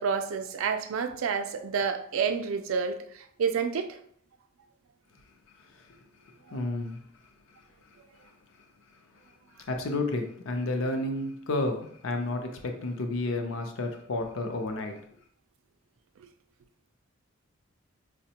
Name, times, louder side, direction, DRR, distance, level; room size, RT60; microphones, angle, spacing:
voice 1, 0.0-4.0 6.5-6.6, right 6 dB, 80° right, 0.4 m, -29 dB
voice 2, 6.5-7.0 9.7-15.0, left 2 dB, 70° left, 0.5 m, -31 dB
4.9 x 2.1 x 2.8 m
head